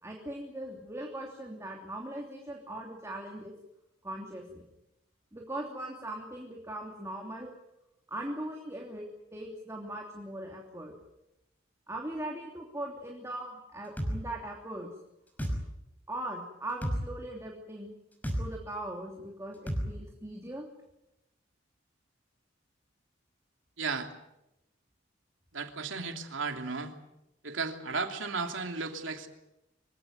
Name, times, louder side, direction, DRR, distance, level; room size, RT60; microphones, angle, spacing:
voice 1, 0.0-3.5 4.0-4.6 5.3-7.5 8.1-9.1 9.3-10.9 11.9-14.9 16.1-17.9 18.4-20.7, right 1 dB, 15° right, 0 dB, 3.1 m, -40 dB
sound 1, 14.0-14.2 15.4-15.6 16.8-17.0 18.2-18.4 19.7-19.9, equal, 10° left, 5.8 m, -30 dB
voice 2, 23.8-24.1 25.5-26.9 27.4-29.3, right 4 dB, 80° right, 4 dB, 3.0 m, -34 dB
25.5 x 17.0 x 9.4 m, 0.89 s
head